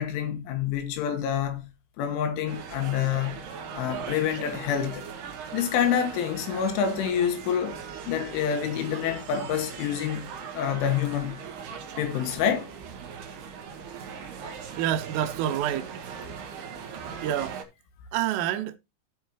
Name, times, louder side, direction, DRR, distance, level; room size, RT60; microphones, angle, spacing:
voice 1, 0.0-1.7 2.0-3.5 3.7-5.1 5.5-7.8 8.1-11.4 12.0-12.7, left 8 dB, 75° left, 3.6 m, -27 dB
sound 1, 2.5-17.6, right 6 dB, 65° right, 3.2 m, -39 dB
voice 2, 14.8-15.9 17.2-17.6 18.1-18.8, right 11 dB, 90° right, 3.5 m, -27 dB
15.5 x 5.6 x 3.0 m
omnidirectional pair, 5.7 m